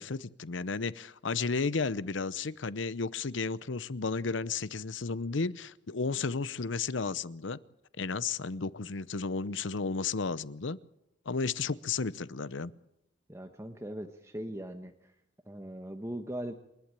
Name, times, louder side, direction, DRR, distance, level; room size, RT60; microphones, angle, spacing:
voice 1, 0.0-7.6 8.0-10.8 11.3-12.7, left 4 dB, 80° left, 18 dB, 0.8 m, -33 dB
voice 2, 13.3-15.1 15.4-16.5, right 1 dB, 15° right, 6 dB, 1.1 m, -40 dB
28.0 x 12.0 x 9.0 m, 0.82 s
head